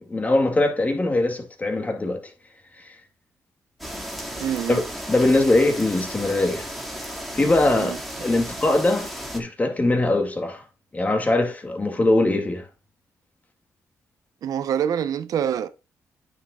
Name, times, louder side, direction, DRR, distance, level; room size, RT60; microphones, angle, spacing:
voice 1, 0.1-2.3 2.8-2.9 4.7-4.8 5.1-6.7 7.3-10.6 10.9-12.7, left 2 dB, 25° left, 2.2 m, -22 dB
sound 1, 3.8-9.4, equal, ahead, 2.1 m, -34 dB
voice 2, 4.4-4.8 7.7-8.0 14.4-15.7, right 9 dB, 75° right, 0.8 m, -25 dB
9.2 x 6.8 x 2.4 m
cardioid pair, 70°, 6 cm